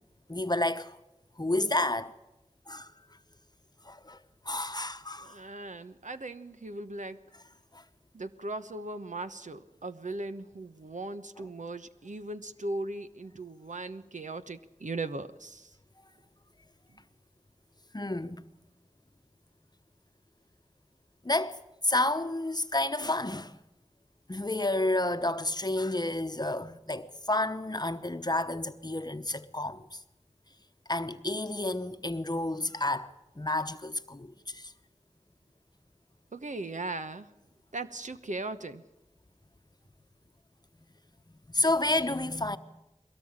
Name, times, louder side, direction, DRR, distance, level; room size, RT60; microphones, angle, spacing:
voice 1, 0.3-1.0 1.4-2.1 2.7-2.9 3.8-4.2 4.4-5.4 7.7-7.8 17.9-18.4 21.2-23.6 24.3-30.0 30.9-34.7 41.5-42.6, left 2 dB, 35° left, 0.9 m, -30 dB
voice 2, 5.2-7.2 8.1-15.8 16.9-17.0 36.3-37.3 37.7-38.8, right 2 dB, 80° right, 1.0 m, -38 dB
22.0 x 17.5 x 8.8 m
wide cardioid pair, 45°, 13 cm